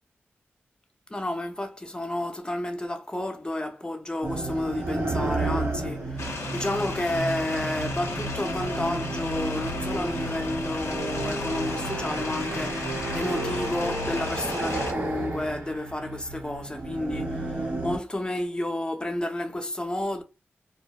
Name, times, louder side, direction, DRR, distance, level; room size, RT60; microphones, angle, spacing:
voice 1, 1.1-20.2, left 1 dB, 20° left, 0.7 m, -31 dB
sound 1, 4.2-18.0, right 2 dB, 65° right, 1.0 m, -32 dB
sound 2, 6.2-14.9, left 3 dB, 75° left, 0.5 m, -35 dB
2.2 x 2.1 x 2.9 m
cardioid pair, 40°, 5 cm